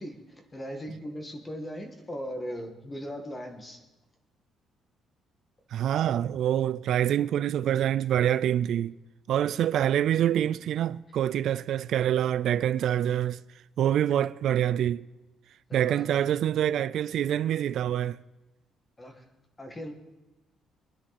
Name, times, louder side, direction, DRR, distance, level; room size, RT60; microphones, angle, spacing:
voice 1, 0.0-3.8 15.7-16.3 19.0-19.2 19.6-19.9, equal, 15° left, 1.8 m, -39 dB
voice 2, 5.7-8.9 9.3-13.4 13.8-15.0 15.7-18.2, right 10 dB, 60° right, 0.3 m, -26 dB
23.0 x 10.0 x 4.2 m
cardioid pair, 160°, 0 cm